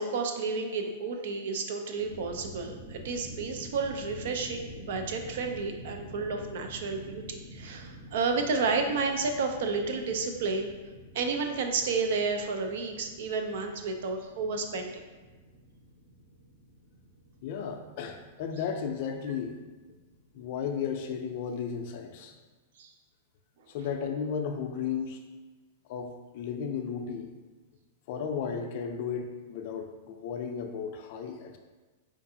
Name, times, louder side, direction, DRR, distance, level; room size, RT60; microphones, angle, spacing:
voice 1, 0.0-10.7 11.1-15.0 22.8-22.9, right 4 dB, 65° right, 5 dB, 0.5 m, -31 dB
sound 1, 1.9-20.7, right 1 dB, 40° right, 0.9 m, -48 dB
voice 2, 17.4-19.6 20.3-22.3 23.7-25.2 25.9-27.3 28.1-31.6, left 7 dB, 50° left, 5 dB, 0.4 m, -34 dB
4.5 x 2.5 x 2.7 m, 1.3 s
supercardioid pair, 150°, 0 cm